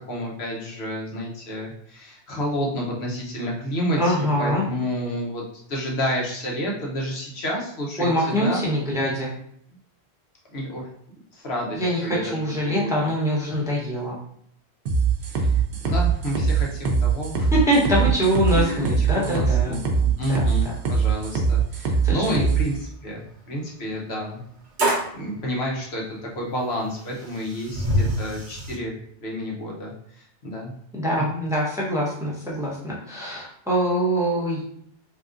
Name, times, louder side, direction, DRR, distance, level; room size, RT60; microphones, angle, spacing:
voice 1, 0.1-5.4 5.7-8.6 10.5-10.9 11.3-13.1 15.2-17.5 18.5-24.4 25.1-30.7, equal, 70° left, -2 dB, 1.1 m, -30 dB
voice 2, 4.0-4.7 8.0-9.3 11.8-14.2 17.5-19.8 20.3-20.4 22.0-22.5 30.9-34.6, equal, 5° right, -5 dB, 0.8 m, -24 dB
sound 1, 14.9-22.6, right 5 dB, 75° right, 0.9 m, -22 dB
sound 2, 20.5-20.6 20.9-21.0 21.7-21.8 23.9-24.0 24.8-25.2 26.4-26.5 27.0-28.8, equal, 50° right, 0.8 m, -25 dB
3.5 x 2.8 x 2.4 m, 0.68 s
omnidirectional pair, 1.1 m